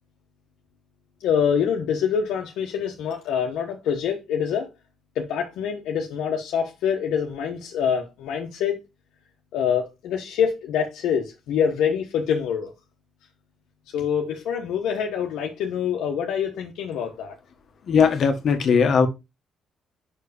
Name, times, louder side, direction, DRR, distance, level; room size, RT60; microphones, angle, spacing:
voice 1, 1.2-4.7 5.1-8.8 9.5-12.7 13.9-17.3, left 7 dB, 85° left, 1.2 m, -25 dB
voice 2, 17.9-19.1, left 6 dB, 60° left, 1.5 m, -19 dB
5.9 x 4.7 x 5.1 m
cardioid pair, 90°, 0 cm